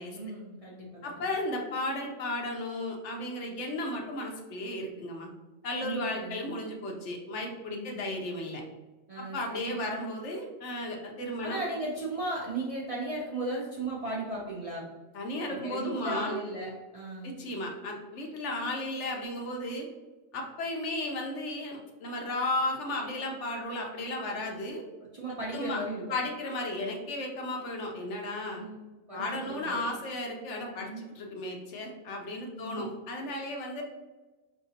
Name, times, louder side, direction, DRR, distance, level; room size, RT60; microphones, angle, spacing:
voice 1, 0.1-1.2 5.8-6.5 7.7-7.9 9.1-9.9 11.4-14.9 15.5-17.3 25.1-26.0 28.5-28.8 29.1-29.8 30.8-31.1 32.5-32.9, right 2 dB, 45° right, -5 dB, 0.4 m, -36 dB
voice 2, 1.0-5.3 5.6-8.6 9.2-11.6 15.1-16.4 17.2-19.9 20.3-24.8 25.5-25.8 26.1-28.6 29.1-33.8, left 1 dB, 65° left, 1 dB, 0.9 m, -34 dB
4.7 x 2.9 x 2.7 m, 1.2 s
omnidirectional pair, 1.4 m